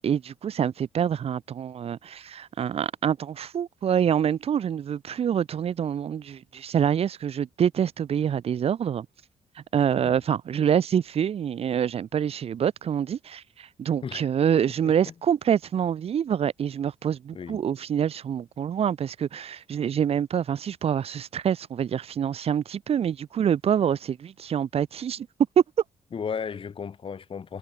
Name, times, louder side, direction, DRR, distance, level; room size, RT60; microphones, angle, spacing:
voice 1, 0.0-9.1 9.7-25.3, right 8 dB, 60° right, 4.7 m, -26 dB
voice 2, 26.1-27.6, left 6 dB, 50° left, 6.8 m, -35 dB
hypercardioid pair, 50°, 11 cm